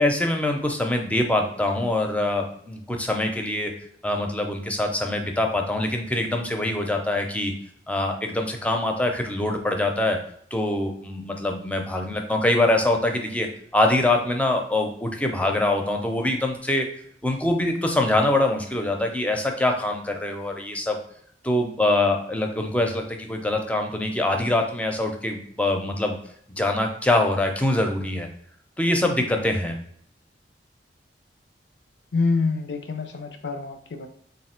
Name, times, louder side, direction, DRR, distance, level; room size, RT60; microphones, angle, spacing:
voice 1, 0.0-3.7 4.0-7.5 7.9-10.2 10.5-13.5 13.7-16.9 17.2-21.0 21.4-26.2 26.6-28.3 28.8-29.8, left 1 dB, 10° left, 3 dB, 0.5 m, -24 dB
voice 2, 32.1-34.1, left 4 dB, 80° left, 7 dB, 0.5 m, -26 dB
3.3 x 2.6 x 4.3 m, 0.67 s
head